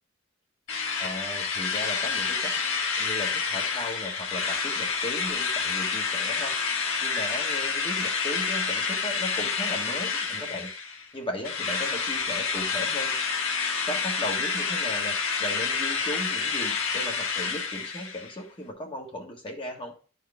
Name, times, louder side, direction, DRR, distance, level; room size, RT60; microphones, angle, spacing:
Drill, 0.7-11.1 11.4-18.3, left 5 dB, 75° left, 1.6 m, -28 dB
voice 1, 1.0-2.5 3.0-6.6 7.0-10.7 11.1-13.2 13.9-19.9, left 1 dB, 25° left, 0 dB, 1.5 m, -36 dB
11.5 x 4.7 x 3.5 m, 0.38 s
head